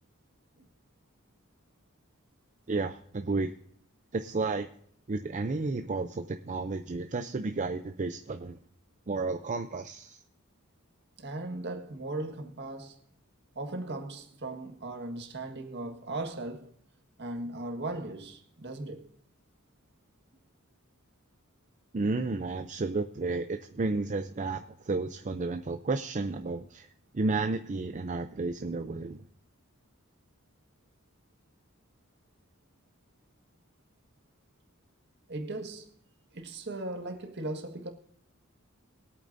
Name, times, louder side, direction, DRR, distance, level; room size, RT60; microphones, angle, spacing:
voice 1, 2.7-3.5 4.1-4.7 5.1-8.6 9.1-10.2 21.9-26.9 27.1-29.2, right 3 dB, 35° right, 0.5 m, -32 dB
voice 2, 11.2-13.0 13.5-16.7 17.2-19.1 35.3-35.9 36.3-37.9, right 2 dB, 55° right, 1.7 m, -38 dB
22.5 x 8.6 x 2.7 m
head